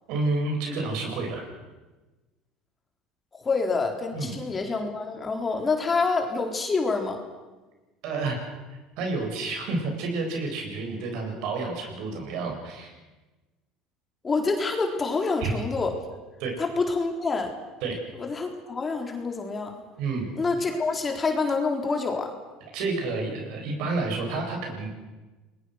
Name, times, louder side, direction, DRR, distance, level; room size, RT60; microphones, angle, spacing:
voice 1, 0.1-1.4 4.1-4.4 8.0-8.5 9.0-12.9 15.4-15.5 16.4-16.5 17.8-18.0 20.0-20.4 22.7-24.9, right 3 dB, 70° right, 2 dB, 7.9 m, -29 dB
voice 2, 3.4-7.2 14.2-16.0 16.6-17.6 18.2-19.8 20.4-22.4, left 4 dB, 25° left, 3 dB, 3.9 m, -27 dB
30.0 x 21.0 x 6.5 m, 1.2 s
supercardioid pair, 115°, 0 cm